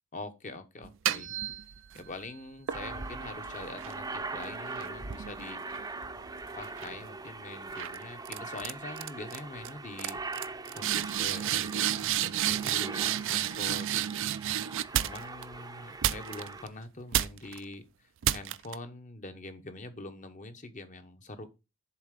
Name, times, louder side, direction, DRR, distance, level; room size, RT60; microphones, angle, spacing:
voice 1, 0.1-1.3 1.9-5.6 6.6-10.2 10.7-14.3 15.0-17.8 18.3-21.5, left 2 dB, 35° left, 9 dB, 1.0 m, -44 dB
sound 1, 0.8-2.1 2.7-6.2 6.6-7.0 7.8-8.0 8.2-8.7 9.0-9.4 9.6-9.7 10.0-15.4 16.0-16.7 17.1-17.6 18.2-18.7, right 11 dB, 60° right, 0.4 m, -32 dB
Aircraft, 2.7-16.6, right 3 dB, 15° right, 0.6 m, -41 dB
7.2 x 4.1 x 6.6 m, 0.27 s
head